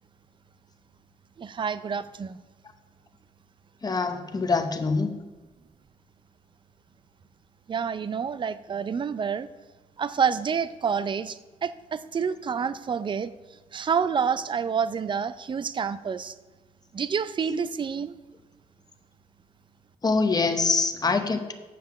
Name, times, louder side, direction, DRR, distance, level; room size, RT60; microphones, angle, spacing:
voice 1, 1.4-2.4 7.7-9.5 10.0-13.3 13.7-16.3 16.9-18.2, right 6 dB, 35° right, 14 dB, 0.4 m, -28 dB
voice 2, 3.8-5.2 20.0-21.5, left 4 dB, 25° left, 6 dB, 0.9 m, -24 dB
7.6 x 5.6 x 5.9 m, 1.2 s
cardioid pair, 75°, 15 cm